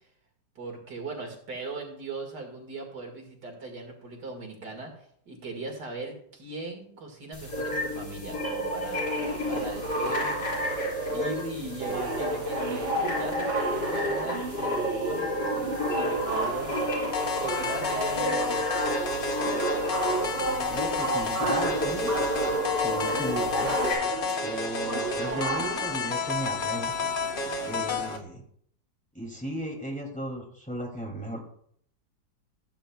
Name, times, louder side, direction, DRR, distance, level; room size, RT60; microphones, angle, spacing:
voice 1, 0.6-9.2 9.5-10.4 11.0-16.8 17.1-18.6, right 2 dB, 80° right, 2 dB, 2.7 m, -39 dB
sound 1, 7.3-23.9, equal, 80° left, 5.0 m, -30 dB
sound 2, 9.1-28.2, right 3 dB, 40° right, 1.3 m, -35 dB
sound 3, 17.1-28.2, left 4 dB, 50° left, 0.6 m, -31 dB
voice 2, 20.7-22.1 22.8-23.8 24.4-26.9 27.6-28.4 29.1-31.4, equal, 5° left, 0 dB, 2.4 m, -35 dB
15.5 x 8.8 x 2.3 m, 0.66 s
omnidirectional pair, 1.8 m